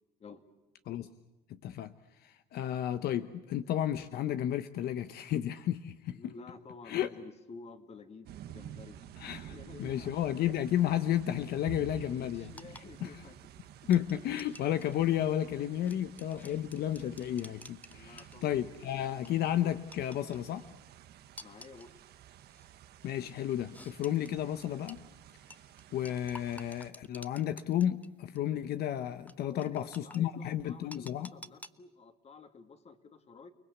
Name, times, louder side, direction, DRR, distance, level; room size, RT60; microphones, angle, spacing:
voice 1, 2.2-6.3 6.9-7.1 9.2-9.5 9.8-12.5 13.0-13.2 13.9-20.6 23.0-25.0 25.9-31.3, left 11 dB, 70° left, 0.9 m, -32 dB
voice 2, 6.1-9.0 9.3-10.4 12.0-13.4 13.8-13.9 17.9-19.1 21.4-22.0 29.4-33.5, left 4 dB, 40° left, 2.3 m, -51 dB
sound 1, 8.3-26.9, right 11 dB, 70° right, 1.3 m, -51 dB
sound 2, 12.5-18.7 19.1-19.4 19.9-20.6 21.4-21.9 22.5-22.7 23.7-25.0 25.5-28.1 28.4-28.5 29.3-30.2 30.9-31.7, left 2 dB, 10° left, 1.0 m, -51 dB
30.0 x 20.5 x 8.3 m
cardioid pair, 110°, 17 cm